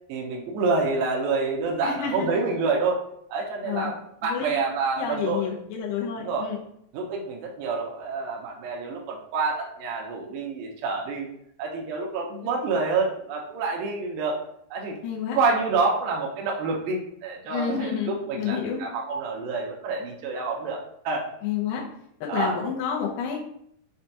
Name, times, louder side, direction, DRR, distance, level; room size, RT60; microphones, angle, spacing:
voice 1, 0.1-3.0 3.3-3.9 4.2-5.6 6.1-6.5 6.9-11.3 11.6-14.4 14.7-14.9 15.3-20.8 21.1-21.3 22.3-22.6, right 4 dB, 80° right, -1 dB, 2.2 m, -27 dB
voice 2, 1.8-2.3 3.6-3.9 4.2-4.6 5.0-6.6 12.3-12.5 15.0-15.4 17.5-18.8 21.4-21.8 22.2-23.4, left 7 dB, 90° left, -2 dB, 1.9 m, -29 dB
6.2 x 2.2 x 2.8 m, 0.71 s
omnidirectional pair, 4.5 m